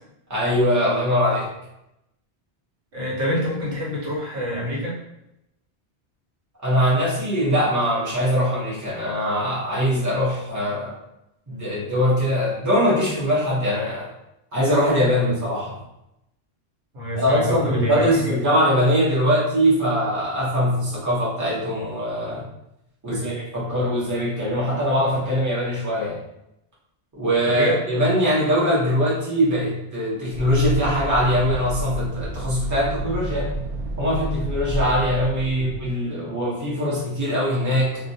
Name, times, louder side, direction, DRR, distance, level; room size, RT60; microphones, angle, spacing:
voice 1, 0.3-1.5 6.6-10.9 11.5-14.1 14.5-15.8 17.1-22.5 23.0-26.2 27.2-33.5 34.0-38.1, equal, 20° right, -7 dB, 0.7 m, -22 dB
voice 2, 2.9-5.0 15.1-15.3 16.9-18.4 23.0-23.3 27.4-27.8 35.5-35.7, equal, 85° right, -5 dB, 1.1 m, -26 dB
sound 1, 30.3-35.9, right 2 dB, 50° right, 0.6 m, -30 dB
2.3 x 2.1 x 2.6 m, 0.85 s
omnidirectional pair, 1.1 m